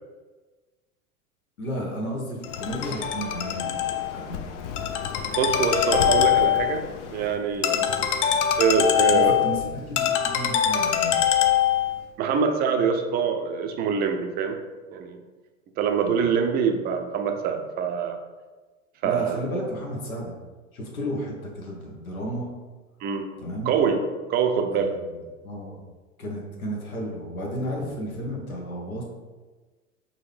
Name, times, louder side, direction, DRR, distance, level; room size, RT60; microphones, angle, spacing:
voice 1, 1.6-4.4 7.3-7.4 7.7-8.4 9.1-11.2 16.0-16.3 19.0-20.4 20.7-22.5 23.4-23.7 24.7-24.9 25.4-25.8 26.2-29.0, equal, 85° left, -1 dB, 1.2 m, -33 dB
Ringtone, 2.4-12.0, left 10 dB, 60° left, 0.6 m, -24 dB
voice 2, 5.3-6.9 7.1-7.9 8.6-9.4 12.2-14.6 14.9-15.2 15.8-18.2 19.0-19.4 23.0-23.3 23.7-24.0 24.3-24.9, right 6 dB, 25° right, 5 dB, 0.4 m, -24 dB
5.0 x 2.7 x 3.2 m, 1.3 s
hypercardioid pair, 90°, 41 cm